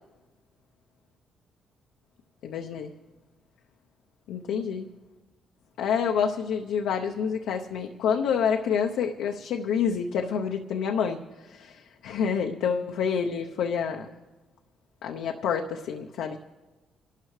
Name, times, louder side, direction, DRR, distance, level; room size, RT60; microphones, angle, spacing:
voice 1, 2.4-2.9 4.3-4.9 5.8-14.1 15.0-16.4, left 7 dB, 85° left, 2 dB, 0.7 m, -28 dB
27.5 x 12.5 x 3.2 m, 1.2 s
cardioid pair, 90°, 0 cm